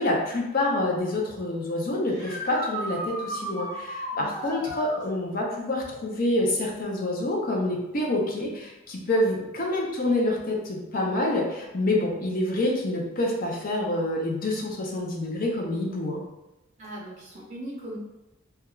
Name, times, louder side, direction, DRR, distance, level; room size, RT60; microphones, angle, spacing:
voice 1, 0.0-16.2, left 1 dB, 45° left, -1 dB, 0.5 m, -27 dB
sound 1, 2.1-5.1 8.4-8.5 10.5-10.6 16.8-16.9, right 1 dB, 15° left, 0.9 m, -34 dB
voice 2, 16.8-18.0, right 1 dB, 35° right, -6 dB, 0.5 m, -40 dB
2.3 x 2.3 x 3.0 m, 0.95 s
head